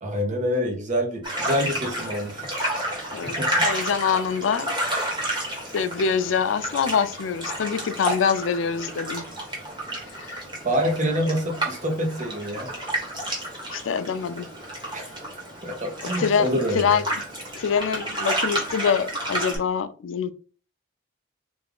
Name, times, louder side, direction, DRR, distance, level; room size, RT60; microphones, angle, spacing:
voice 1, 0.0-2.5 3.1-3.7 10.6-12.7 14.9-15.1 15.6-17.0, equal, 40° right, 2 dB, 0.8 m, -26 dB
sound 1, 1.2-19.6, right 1 dB, 25° right, 1.2 m, -31 dB
voice 2, 3.6-4.7 5.7-9.2 10.2-10.4 13.7-14.5 16.2-17.0 17.6-20.3, left 6 dB, 85° left, 11 dB, 0.4 m, -25 dB
3.5 x 2.4 x 3.4 m, 0.40 s
head